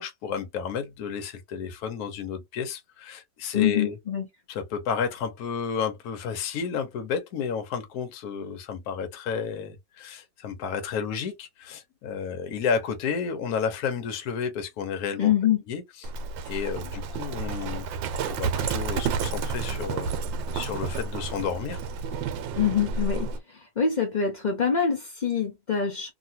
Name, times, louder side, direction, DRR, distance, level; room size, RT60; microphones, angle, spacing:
voice 1, 0.0-4.0 4.5-15.3 15.7-16.1 16.5-17.9 18.3-20.1 20.5-21.8, left 6 dB, 60° left, 1.2 m, -31 dB
voice 2, 3.5-4.3 15.2-15.6 22.6-23.3 23.8-26.1, left 7 dB, 80° left, 0.4 m, -24 dB
Livestock farm animals working animals, 16.0-23.4, right 5 dB, 90° right, 1.4 m, -30 dB
3.0 x 2.8 x 2.7 m
omnidirectional pair, 2.0 m